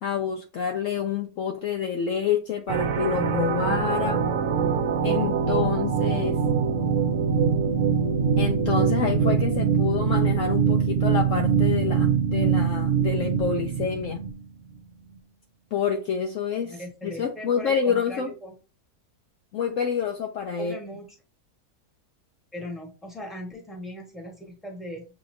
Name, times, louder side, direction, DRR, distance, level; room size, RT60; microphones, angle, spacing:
voice 1, 0.0-4.2 5.0-6.4 8.4-14.3 15.7-18.3 19.5-20.8, left 7 dB, 65° left, 0.8 m, -28 dB
sound 1, 2.7-14.4, right 6 dB, 65° right, 0.8 m, -23 dB
voice 2, 16.7-18.5 20.6-21.2 22.5-25.0, equal, ahead, 1.1 m, -38 dB
7.0 x 2.9 x 2.6 m
omnidirectional pair, 1.7 m